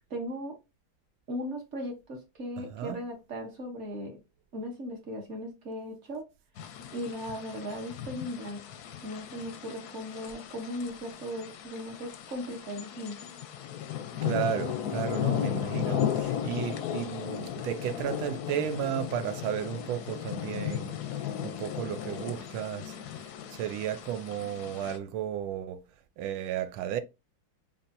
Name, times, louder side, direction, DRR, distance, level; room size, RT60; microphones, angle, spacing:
voice 1, 0.1-0.6 1.3-4.2 4.5-6.3 6.9-8.6 9.0-13.2, equal, 45° right, 1.1 m, -37 dB
voice 2, 2.6-3.0 14.2-21.0 21.4-25.8 26.2-27.0, right 10 dB, 85° right, 1.4 m, -34 dB
sound 1, 6.6-25.0, left 10 dB, 70° left, 0.9 m, -35 dB
6.9 x 2.5 x 2.6 m
omnidirectional pair, 2.2 m